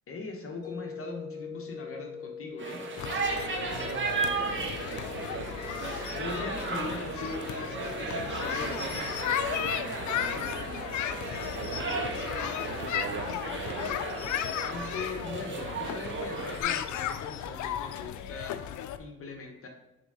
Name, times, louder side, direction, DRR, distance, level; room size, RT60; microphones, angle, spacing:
voice 1, 0.1-2.8 5.9-10.5 14.6-19.7, left 3 dB, 45° left, 3 dB, 1.2 m, -41 dB
sound 1, 0.6-15.6, left 6 dB, 15° left, 1.9 m, -47 dB
sound 2, 2.6-16.6, right 3 dB, 40° right, 1.7 m, -35 dB
Day Kids On The Swings, 3.0-19.0, left 10 dB, 75° left, 0.5 m, -35 dB
voice 2, 3.5-5.5 11.4-12.3 12.6-14.0, right 8 dB, 55° right, 12 dB, 0.6 m, -42 dB
6.9 x 3.6 x 5.6 m, 1.0 s
cardioid pair, 90°, 30 cm